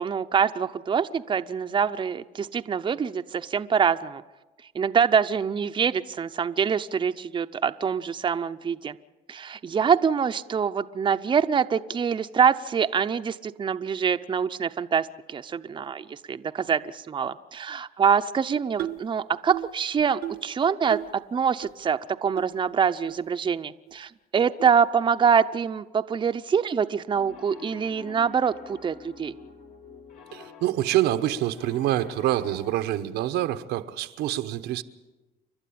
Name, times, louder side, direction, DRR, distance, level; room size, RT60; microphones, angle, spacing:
voice 1, 0.0-4.2 4.7-9.0 9.3-29.3, right 7 dB, 30° right, 0.7 m, -25 dB
sound 1, 18.8-19.1 19.5-19.8 20.2-20.5 20.9-21.2 21.6-21.7 22.4-22.5 23.1-23.2 23.9-24.0 24.6-24.8, right 13 dB, 70° right, 0.8 m, -34 dB
Piano, 27.1-32.8, left 5 dB, 75° left, 2.7 m, -47 dB
voice 2, 30.3-34.8, right 13 dB, 90° right, 1.0 m, -26 dB
29.5 x 12.0 x 8.6 m
cardioid pair, 110°, 17 cm